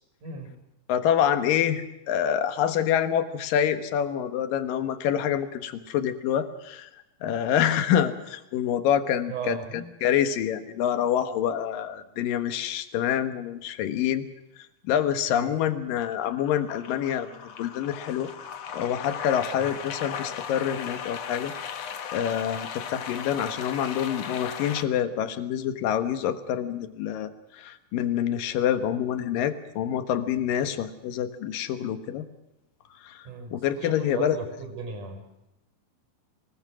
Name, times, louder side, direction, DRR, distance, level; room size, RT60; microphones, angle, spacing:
voice 1, 0.2-0.5 9.3-9.9 15.3-15.5 19.5-19.6 33.2-35.2, right 4 dB, 60° right, 5 dB, 6.4 m, -36 dB
voice 2, 0.9-6.9 7.2-14.2 14.8-17.3 17.6-18.3 18.7-32.3 33.0-33.2 33.5-34.4, left 9 dB, 75° left, 10 dB, 3.0 m, -27 dB
sound 1, 15.3-15.6 16.0-24.8, left 7 dB, 55° left, 2.3 m, -37 dB
24.0 x 21.0 x 6.3 m, 0.90 s
omnidirectional pair, 4.1 m